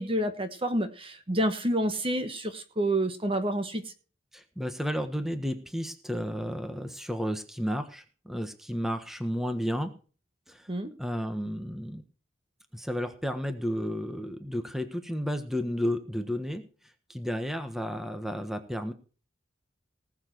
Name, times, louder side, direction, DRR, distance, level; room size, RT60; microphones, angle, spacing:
voice 1, 0.0-3.8 10.7-10.9, right 1 dB, 30° right, 9 dB, 1.3 m, -28 dB
voice 2, 4.3-9.9 10.5-10.7 11.0-12.0 12.7-16.6 17.1-18.9, equal, ahead, 8 dB, 1.4 m, -32 dB
19.0 x 7.4 x 4.6 m, 0.37 s
head